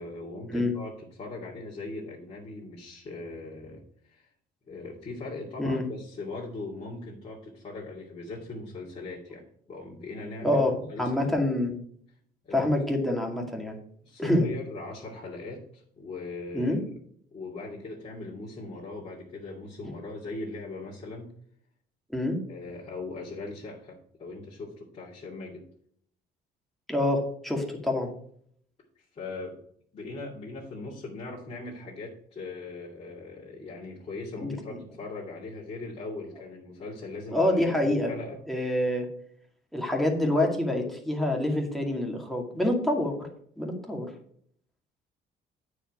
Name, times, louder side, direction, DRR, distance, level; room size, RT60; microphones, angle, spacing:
voice 1, 0.0-4.3 4.7-10.6 10.9-11.4 12.4-12.7 14.0-16.8 17.3-21.3 22.5-25.7 29.0-29.6 29.9-38.6, left 3 dB, 40° left, -6 dB, 2.5 m, -40 dB
voice 2, 10.4-11.7 12.5-13.8 14.2-14.5 16.5-16.8 22.1-22.4 26.9-28.1 34.4-34.5 37.3-38.1 38.5-39.1 39.7-43.3 43.6-44.1, left 1 dB, ahead, 0 dB, 2.2 m, -26 dB
8.9 x 4.9 x 6.0 m, 0.63 s
cardioid pair, 110°, 17 cm